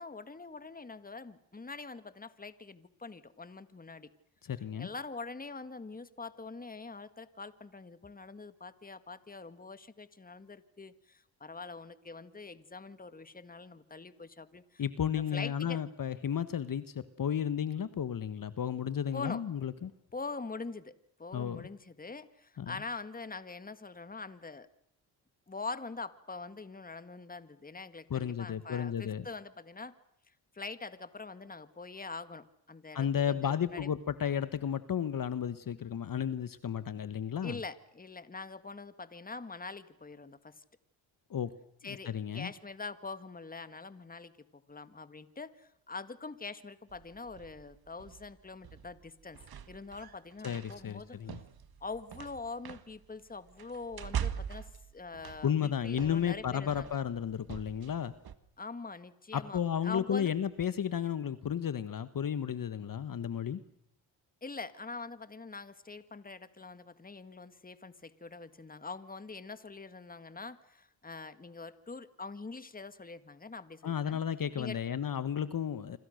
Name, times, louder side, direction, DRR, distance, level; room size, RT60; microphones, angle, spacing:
voice 1, 0.0-4.1 4.8-14.8 15.1-15.8 19.1-19.4 20.1-24.7 25.5-29.9 30.5-33.9 37.4-40.6 41.8-49.4 49.7-51.4 51.8-56.9 58.6-60.3 64.4-74.2 74.6-74.8, left 4 dB, 20° left, 12 dB, 1.8 m, -44 dB
voice 2, 4.4-4.9 14.8-19.9 21.3-21.7 22.6-22.8 28.1-29.2 32.9-37.6 41.3-41.5 41.8-42.5 50.4-51.4 55.4-58.1 59.3-63.6 73.8-76.0, left 8 dB, 45° left, 13 dB, 1.4 m, -33 dB
sound 1, 46.9-58.4, right 8 dB, 50° right, 1.9 m, -43 dB
26.5 x 26.5 x 6.6 m, 0.69 s
cardioid pair, 75°, 45 cm